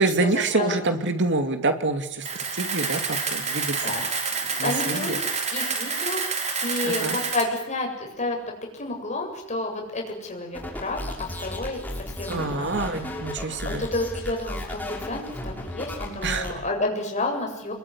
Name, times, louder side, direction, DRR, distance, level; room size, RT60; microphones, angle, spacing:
voice 1, 0.0-4.1 4.6-5.2 6.8-7.2 12.3-13.8 16.2-16.5, right 3 dB, 55° right, 7 dB, 2.8 m, -26 dB
Camera, 2.2-7.4, right 5 dB, 35° right, 4.1 m, -28 dB
voice 2, 4.5-6.2 6.6-8.4 8.7-11.0 11.4-11.8 12.2-12.7 13.4-17.7, left 2 dB, 35° left, 2 dB, 7.6 m, -30 dB
sound 1, 10.5-16.5, left 1 dB, 10° left, 6.1 m, -34 dB
27.0 x 22.5 x 9.8 m, 0.81 s
head